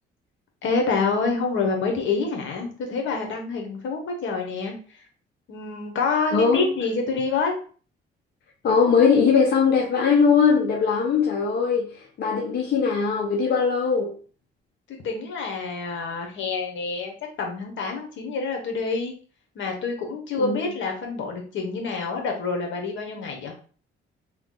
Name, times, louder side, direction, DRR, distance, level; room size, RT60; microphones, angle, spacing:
voice 1, 0.6-5.0 5.5-7.5 14.9-19.1 19.5-23.6, left 4 dB, 75° left, 1.1 m, -27 dB
voice 2, 6.3-6.7 8.6-14.2 20.4-20.6, left 5 dB, 55° left, 0.7 m, -20 dB
3.1 x 2.3 x 3.8 m
cardioid pair, 90°, 20 cm